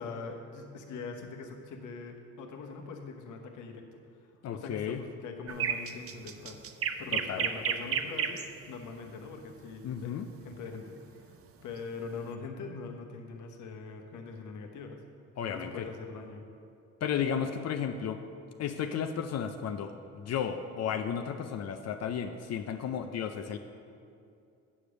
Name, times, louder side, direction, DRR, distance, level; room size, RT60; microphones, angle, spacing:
voice 1, 0.0-6.6 7.0-10.2 10.4-11.3 11.6-15.0 15.5-16.4, left 4 dB, 80° left, 3 dB, 1.1 m, -42 dB
voice 2, 4.4-5.0 7.1-7.5 9.8-10.3 15.4-15.9 17.0-18.2 18.6-23.6, left 8 dB, 60° left, 7 dB, 0.5 m, -33 dB
sound 1, 5.5-8.5 10.5-10.8, right 7 dB, 50° right, 0.6 m, -31 dB
8.6 x 5.0 x 6.3 m, 2.5 s
cardioid pair, 90°, 30 cm